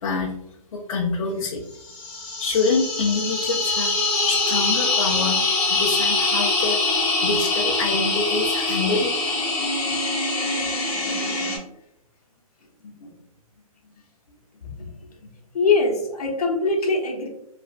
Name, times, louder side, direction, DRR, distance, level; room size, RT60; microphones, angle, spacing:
voice 1, 0.0-0.3 0.7-1.6 2.4-4.0 4.3-5.4 5.7-6.8 7.2-9.1, left 4 dB, 65° left, -2 dB, 0.5 m, -25 dB
sad scream fx, 1.8-11.6, left 3 dB, 20° left, 0.8 m, -23 dB
voice 2, 12.8-13.2 13.8-13.9 14.6-14.9 15.2-15.3 15.5-17.3, left 3 dB, 85° left, 0 dB, 0.9 m, -23 dB
3.3 x 2.4 x 2.2 m, 0.81 s
hypercardioid pair, 150°, 19 cm